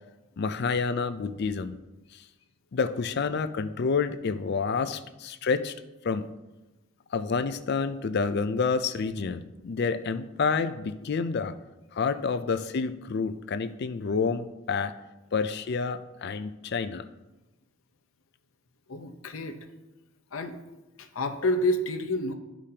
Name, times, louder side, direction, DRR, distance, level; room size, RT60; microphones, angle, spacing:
voice 1, 0.4-1.8 2.1-2.2 2.7-5.7 6.0-6.3 7.1-11.5 11.9-14.9 15.3-17.0, left 5 dB, 55° left, 11 dB, 0.4 m, -28 dB
voice 2, 18.9-19.6 20.3-20.5 21.0-22.3, left 1 dB, 85° left, 6 dB, 0.8 m, -28 dB
13.0 x 5.0 x 2.8 m, 1.1 s
head